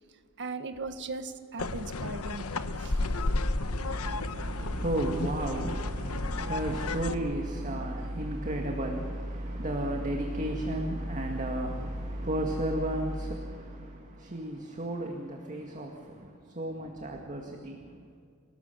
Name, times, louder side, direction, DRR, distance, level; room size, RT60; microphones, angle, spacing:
voice 1, 0.4-3.1, right 3 dB, 55° right, 1.5 m, -38 dB
sound 1, 1.6-7.1, left 2 dB, 90° left, 1.1 m, -32 dB
sound 2, 2.7-13.4, equal, 80° right, 6.0 m, -37 dB
voice 2, 3.7-18.1, right 1 dB, 35° right, 2.1 m, -34 dB
29.5 x 18.5 x 6.9 m
head